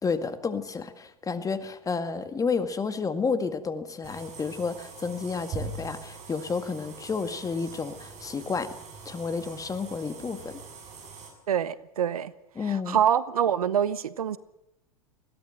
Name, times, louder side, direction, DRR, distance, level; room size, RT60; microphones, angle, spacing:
voice 1, 0.0-8.7 9.1-10.6 12.6-13.0, left 5 dB, 20° left, 1.9 m, -31 dB
sound 1, 4.0-11.3, right 4 dB, 40° right, 6.7 m, -43 dB
voice 2, 11.5-12.3 12.7-14.4, right 9 dB, 80° right, 0.9 m, -25 dB
21.0 x 16.5 x 7.8 m
hypercardioid pair, 95°, 19 cm